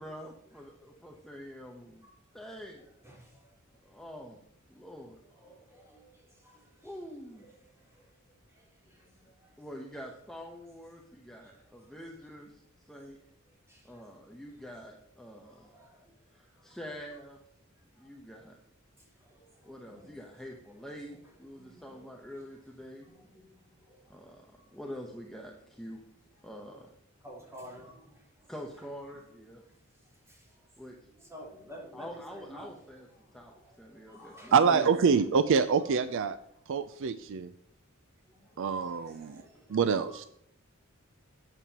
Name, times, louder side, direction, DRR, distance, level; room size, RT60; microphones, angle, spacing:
voice 1, 0.0-2.1 2.3-2.8 3.9-4.4 4.7-5.2 6.8-7.5 9.6-13.2 13.8-15.7 16.4-17.4 18.0-18.6 19.6-23.1 24.1-26.0 26.4-26.9 28.5-29.6 30.8-31.0 31.9-33.1 33.3-33.5 33.8-34.9 39.0-39.3, equal, ahead, 0 dB, 0.9 m, -45 dB
voice 2, 3.0-3.5 5.3-7.0 7.3-8.2 8.5-9.5 11.4-12.0 13.7-14.1 15.4-16.1 16.5-16.8 18.0-18.1 19.0-20.5 20.9-22.4 22.9-24.3 24.6-24.8 27.2-28.5 29.1-29.3 29.6-29.8 30.0-30.7 31.0-32.7 33.1-34.6 35.1-35.2 35.9-36.0 38.3-39.8 40.1-40.3, equal, 15° right, -4 dB, 3.7 m, -54 dB
voice 3, 34.5-36.4 36.7-37.5 38.6-39.4 39.7-40.2, right 6 dB, 60° right, 13 dB, 0.4 m, -26 dB
12.5 x 9.1 x 2.9 m, 0.71 s
head